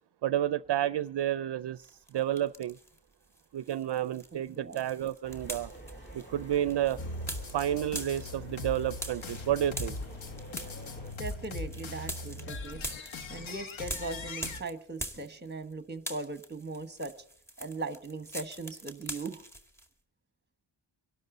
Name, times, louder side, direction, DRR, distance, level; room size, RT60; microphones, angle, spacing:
voice 1, 0.2-2.8 3.5-5.7 6.1-7.0 7.5-10.0, right 11 dB, 60° right, 16 dB, 0.5 m, -30 dB
sound 1, 1.8-3.0 3.3-15.7 16.0-19.9, right 1 dB, 5° left, 2.0 m, -43 dB
voice 2, 4.3-4.8 11.2-12.8 13.3-17.1 17.6-19.4, right 3 dB, 20° right, 11 dB, 1.4 m, -39 dB
sound 2, 5.2-11.1, right 2 dB, 25° left, 4.6 m, -47 dB
sound 3, 7.0-14.6, left 3 dB, 75° left, 1.4 m, -40 dB
24.5 x 12.0 x 3.9 m, 0.64 s
wide cardioid pair, 115°, 47 cm